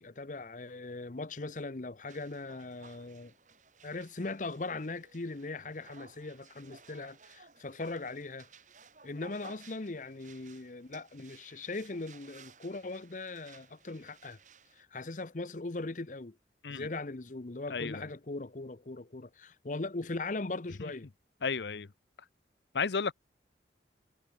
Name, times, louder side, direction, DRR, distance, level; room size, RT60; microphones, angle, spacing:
voice 1, 0.0-3.3 3.8-8.5 9.0-14.4 14.8-16.4 16.7-21.1, left 3 dB, 45° left, 0.8 m, -39 dB
sound 1, 2.1-14.8, right 5 dB, 45° right, 4.8 m, -57 dB
voice 2, 17.7-18.1 20.8-20.9 21.4-21.9 22.7-23.1, left 5 dB, 75° left, 0.7 m, -33 dB
head